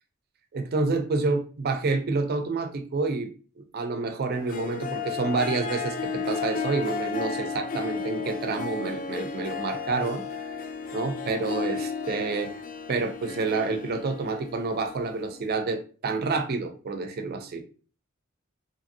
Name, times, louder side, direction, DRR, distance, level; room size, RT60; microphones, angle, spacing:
voice 1, 0.5-3.3 3.6-10.2 10.9-12.5 12.9-17.6, right 3 dB, 50° right, 7 dB, 0.4 m, -28 dB
Harp, 4.3-15.5, left 5 dB, 40° left, 0.3 m, -34 dB
2.8 x 2.5 x 2.6 m, 0.38 s
head